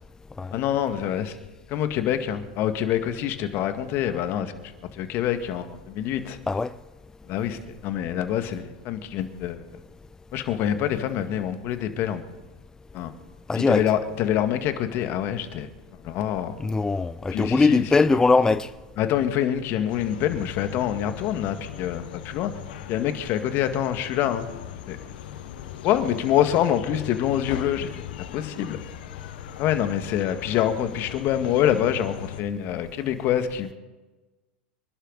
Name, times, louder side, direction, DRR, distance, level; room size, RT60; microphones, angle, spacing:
voice 1, 0.5-1.3 1.7-6.4 7.3-9.6 10.3-12.2 12.9-13.1 13.6-15.7 16.0-16.5 17.3-17.8 19.0-22.5 22.9-24.5 24.9-25.0 25.8-28.8 29.6-33.7, left 10 dB, 45° left, 1.8 m, -26 dB
voice 2, 13.5-13.8 16.6-18.7, left 3 dB, 10° left, 0.4 m, -21 dB
sound 1, 19.9-32.4, left 11 dB, 70° left, 1.3 m, -39 dB
26.5 x 12.0 x 4.1 m
hypercardioid pair, 100°, 5 cm